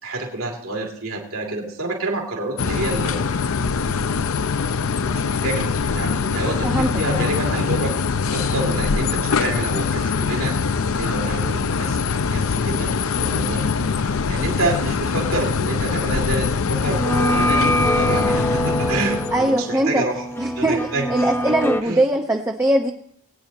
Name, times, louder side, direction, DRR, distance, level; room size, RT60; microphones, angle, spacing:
voice 1, 0.0-3.2 3.6-3.7 5.0-8.0 8.3-10.6 10.9-20.2 20.6-21.1 21.5-21.6 21.8-22.1, right 2 dB, 70° right, 0 dB, 2.8 m, -28 dB
sound 1, 2.6-19.5, left 5 dB, 70° left, 0.5 m, -23 dB
sound 2, 16.7-21.8, equal, 10° left, 0.9 m, -24 dB
voice 2, 19.3-20.0 20.4-22.9, right 1 dB, 15° right, 1 dB, 0.8 m, -21 dB
21.0 x 9.6 x 3.0 m, 0.67 s
head